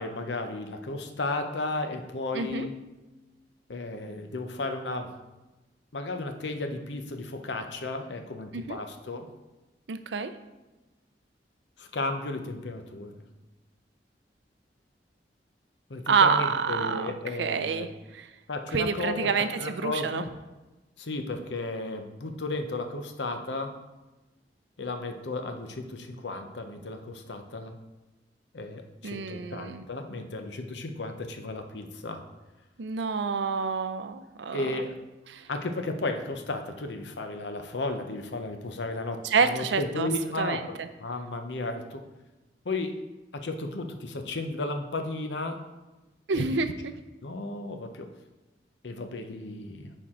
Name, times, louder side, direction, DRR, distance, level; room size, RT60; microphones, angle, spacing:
voice 1, 0.0-2.7 3.7-5.1 5.9-9.3 11.8-13.2 15.9-17.9 18.5-19.3 19.6-20.3 21.0-23.7 24.8-27.8 28.5-32.2 34.5-35.0 35.5-42.0 42.6-43.0 43.3-45.6 46.3-46.6 47.2-48.1 48.8-49.9, left 2 dB, 85° left, 6 dB, 0.8 m, -34 dB
voice 2, 2.3-2.7 8.5-8.8 9.9-10.3 16.1-17.1 17.4-17.9 18.1-18.2 18.7-20.2 29.0-29.8 32.8-34.8 35.3-35.5 39.2-40.1 40.4-40.9 46.3-46.9, right 5 dB, 90° right, 10 dB, 0.5 m, -28 dB
8.8 x 4.6 x 3.7 m, 1.1 s
head